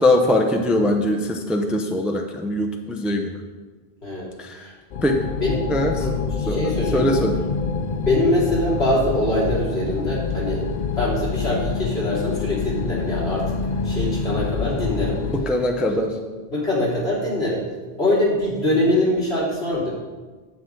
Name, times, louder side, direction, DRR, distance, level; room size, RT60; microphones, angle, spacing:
voice 1, 0.0-3.3 4.4-4.6 5.0-5.2 5.7-6.1 6.5-7.4 15.3-16.2, left 1 dB, ahead, 3 dB, 0.6 m, -21 dB
sound 1, 4.9-15.4, left 5 dB, 50° left, 0.6 m, -26 dB
voice 2, 6.0-7.0 8.0-10.6 11.0-13.5 13.8-15.2 15.9-16.0 16.5-17.6 18.0-19.9, left 1 dB, 90° left, -5 dB, 3.4 m, -23 dB
9.2 x 9.0 x 3.8 m, 1.3 s
omnidirectional pair, 1.0 m